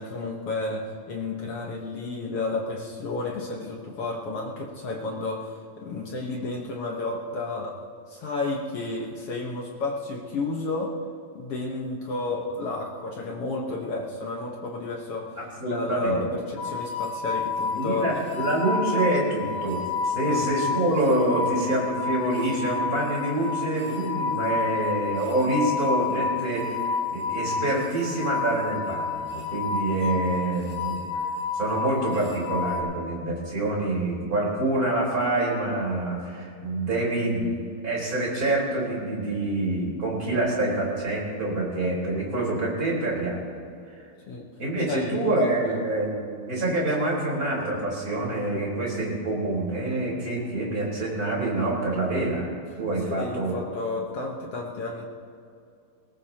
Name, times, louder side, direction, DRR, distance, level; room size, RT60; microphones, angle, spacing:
voice 1, 0.0-7.8 8.1-11.0 11.3-15.4 15.6-18.1 20.3-20.5 30.3-30.4 44.3-44.5 44.9-45.8 53.1-55.1, left 3 dB, 65° left, -1 dB, 1.5 m, -31 dB
voice 2, 15.4-16.2 17.7-26.8 27.1-31.0 31.5-43.5 44.6-52.5 52.8-53.5, right 2 dB, 25° right, -4 dB, 4.4 m, -26 dB
sound 1, 16.6-32.8, left 5 dB, 15° left, 2.4 m, -30 dB
21.5 x 18.5 x 2.9 m, 2.5 s
omnidirectional pair, 4.4 m